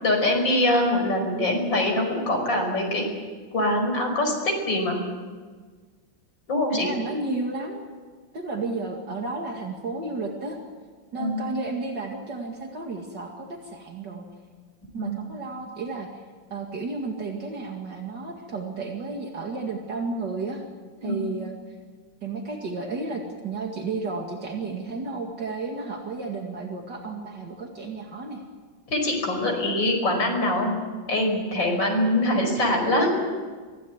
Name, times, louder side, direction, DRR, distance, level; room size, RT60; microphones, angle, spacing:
voice 1, 0.0-3.1 3.5-5.0 6.5-6.9 11.2-11.4 15.0-15.2 21.0-21.2 28.9-30.7 31.1-33.1, left 1 dB, 70° left, 2 dB, 6.1 m, -23 dB
voice 2, 6.7-7.9 8.3-10.6 11.1-14.3 14.9-16.2 16.5-20.6 21.0-21.5 22.2-28.4 29.4-29.6, right 3 dB, 60° right, 1 dB, 2.8 m, -32 dB
24.0 x 16.5 x 9.5 m, 1.5 s
omnidirectional pair, 2.1 m